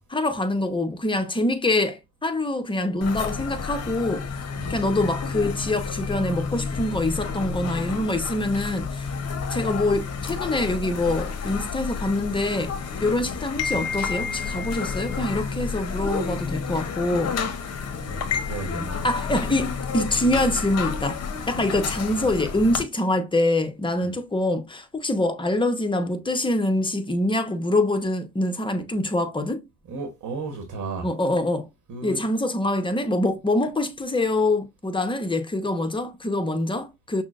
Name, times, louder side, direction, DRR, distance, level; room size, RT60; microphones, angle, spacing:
voice 1, 0.1-4.3 4.7-9.1 9.5-12.7 13.0-17.3 18.7-29.6 31.0-31.7 32.0-37.2, left 1 dB, 15° left, 0.7 m, -25 dB
sound 1, 3.0-22.8, left 5 dB, 45° left, 0.8 m, -30 dB
voice 2, 17.7-19.0 20.0-20.1 24.0-24.1 29.9-31.1 31.9-32.2, right 3 dB, 50° right, 1.1 m, -35 dB
6.0 x 2.1 x 2.4 m
supercardioid pair, 70°, 37 cm